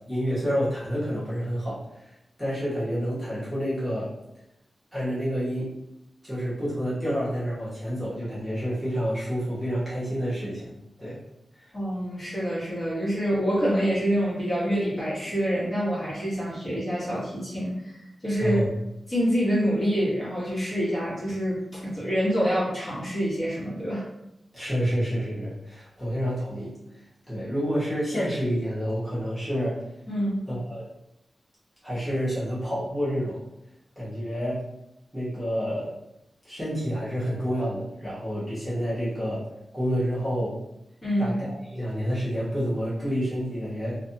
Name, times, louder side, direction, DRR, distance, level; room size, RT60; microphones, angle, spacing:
voice 1, 0.1-1.8 2.4-4.1 4.9-5.7 6.2-10.7 11.0-11.2 18.4-18.7 24.5-26.7 27.3-29.8 30.5-30.8 31.8-33.4 34.0-34.6 35.1-35.9 36.4-39.5 39.7-40.6 41.2-44.0, equal, 5° right, -11 dB, 1.0 m, -28 dB
voice 2, 11.7-18.7 19.1-24.0 30.1-30.4 41.0-41.4, equal, 30° left, -9 dB, 1.2 m, -26 dB
2.5 x 2.2 x 2.6 m, 0.86 s
wide cardioid pair, 150°, 0 cm